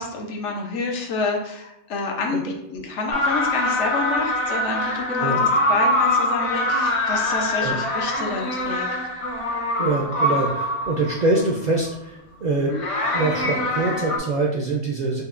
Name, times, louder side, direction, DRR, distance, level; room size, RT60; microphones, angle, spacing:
voice 1, 0.0-8.9, left 3 dB, 85° left, 1 dB, 1.0 m, -28 dB
sound 1, 3.1-11.5 12.7-14.2, left 1 dB, 55° left, 0.3 m, -24 dB
voice 2, 9.8-12.9 13.1-15.2, right 2 dB, 60° right, -2 dB, 0.4 m, -24 dB
5.4 x 2.1 x 2.4 m, 0.84 s
omnidirectional pair, 1.2 m